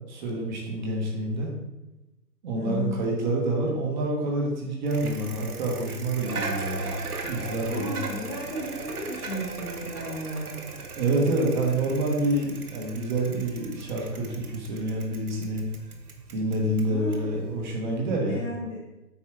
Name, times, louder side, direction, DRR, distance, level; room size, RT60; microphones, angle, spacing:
voice 1, 0.1-1.5 2.4-7.0 7.2-8.0 11.0-15.6 16.3-18.4, right 1 dB, 30° right, -1 dB, 1.5 m, -27 dB
voice 2, 2.6-3.0 7.7-10.6 16.9-17.3 18.3-18.8, equal, 15° left, -7 dB, 1.0 m, -34 dB
Bicycle, 4.9-18.0, right 3 dB, 60° right, 1.3 m, -38 dB
8.4 x 5.4 x 3.7 m, 1.0 s
figure-of-eight pair, 140°, 50 cm